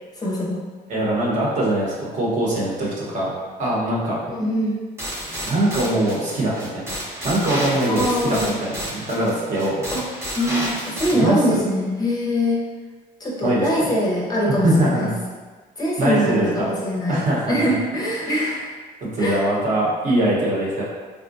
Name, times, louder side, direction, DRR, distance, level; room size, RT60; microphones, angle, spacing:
voice 1, 0.2-0.6 4.3-4.8 7.9-8.5 9.9-10.0 10.3-12.6 13.2-15.1 15.8-18.7 19.2-19.4, equal, 25° left, -4 dB, 0.6 m, -23 dB
voice 2, 0.9-3.3 3.6-4.2 5.4-7.0 7.2-9.8 11.1-11.6 13.4-13.7 14.6-15.1 16.0-16.7 17.1-17.7 19.1-20.8, right 1 dB, 45° right, -5 dB, 0.9 m, -22 dB
sound 1, 5.0-11.1, equal, 15° right, 0.7 m, -30 dB
3.5 x 2.1 x 2.5 m, 1.4 s
cardioid pair, 110°, 17 cm